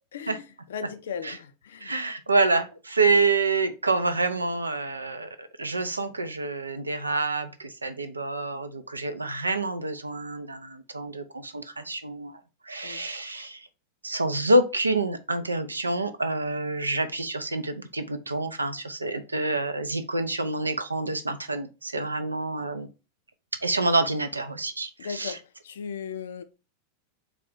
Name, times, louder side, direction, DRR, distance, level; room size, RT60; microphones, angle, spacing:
voice 1, 0.1-1.9 12.8-13.1 22.0-22.1 25.0-26.4, left 7 dB, 60° left, 0.4 m, -37 dB
voice 2, 1.8-12.4 12.7-13.7 14.0-22.9 23.6-25.4, right 2 dB, 80° right, 0.4 m, -27 dB
4.1 x 2.4 x 3.6 m
figure-of-eight pair, 90°, 0 cm